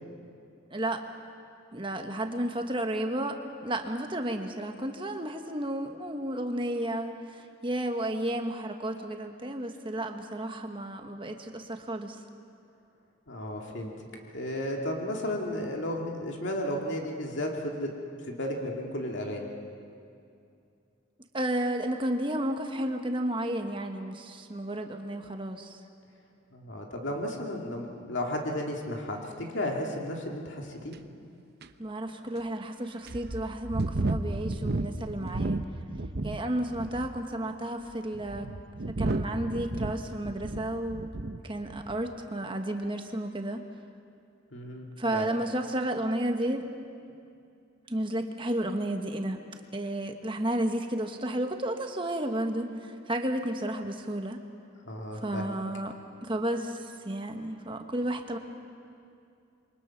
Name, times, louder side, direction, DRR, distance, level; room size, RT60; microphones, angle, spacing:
voice 1, 0.7-1.0 1.7-12.2 21.3-25.8 31.8-35.6 36.2-38.5 38.9-41.1 41.4-43.7 45.0-46.6 47.9-49.4 49.7-54.4 55.1-55.9 56.2-58.4, right 1 dB, 25° right, 5 dB, 1.4 m, -32 dB
voice 2, 13.3-13.9 14.3-17.9 18.2-19.5 26.5-31.0 44.5-44.9 45.1-45.2 54.9-55.5, left 1 dB, 60° left, 0 dB, 2.4 m, -33 dB
sound 1, 30.9-31.0 31.6-31.7 32.4-32.5 33.1-36.4 36.7-37.2 37.9-41.4 41.7-42.0, right 2 dB, 50° right, 0.8 m, -33 dB
27.5 x 23.5 x 6.0 m, 2.5 s
head